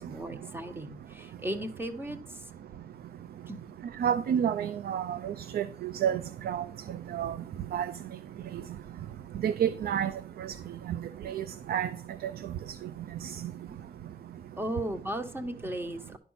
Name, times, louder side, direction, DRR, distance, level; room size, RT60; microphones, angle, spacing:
voice 1, 0.0-2.4 3.5-3.7 14.6-16.2, right 1 dB, 15° right, 1.3 m, -36 dB
voice 2, 4.0-6.2 6.5-6.6 7.1-7.3 7.7-7.9 9.4-10.1 11.3-11.9, right 9 dB, 70° right, 0.5 m, -29 dB
11.0 x 4.4 x 5.7 m
cardioid pair, 75°, 16 cm